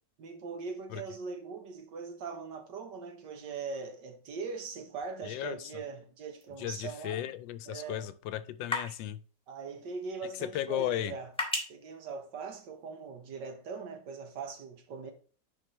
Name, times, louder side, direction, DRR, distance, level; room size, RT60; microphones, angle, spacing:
voice 1, 0.2-7.2 7.7-8.1 9.5-11.3 11.7-15.1, right 5 dB, 70° right, 1.8 m, -41 dB
voice 2, 5.2-5.7 6.6-9.2 10.4-11.1, left 12 dB, 85° left, 1.3 m, -35 dB
sound 1, 6.4-13.1, left 2 dB, 5° left, 1.8 m, -42 dB
10.5 x 4.6 x 3.1 m
omnidirectional pair, 2.0 m